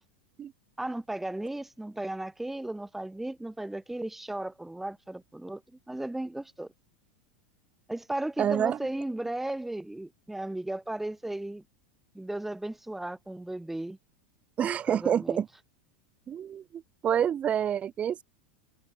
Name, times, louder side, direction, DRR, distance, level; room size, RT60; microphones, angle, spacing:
voice 1, 0.8-5.6 5.9-6.7 7.9-11.6 12.1-14.0 14.9-15.4, right 1 dB, 5° right, 0.9 m, -35 dB
voice 2, 8.4-8.8 14.6-15.5 16.3-18.2, right 9 dB, 30° right, 0.5 m, -28 dB
hypercardioid pair, 90°, 5 cm